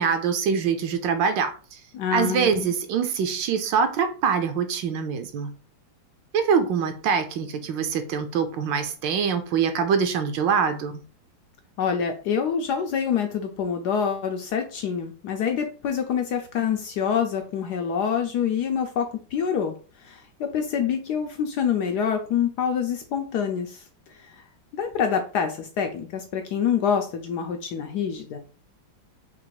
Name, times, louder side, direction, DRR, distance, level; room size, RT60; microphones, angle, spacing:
voice 1, 0.0-1.8 2.1-5.5 6.3-10.9, right 6 dB, 75° right, 1.3 m, -24 dB
voice 2, 1.9-2.7 11.8-19.7 20.0-23.8 24.2-24.4 24.7-28.4, left 7 dB, 75° left, 1.0 m, -26 dB
4.0 x 2.5 x 4.6 m
omnidirectional pair, 2.1 m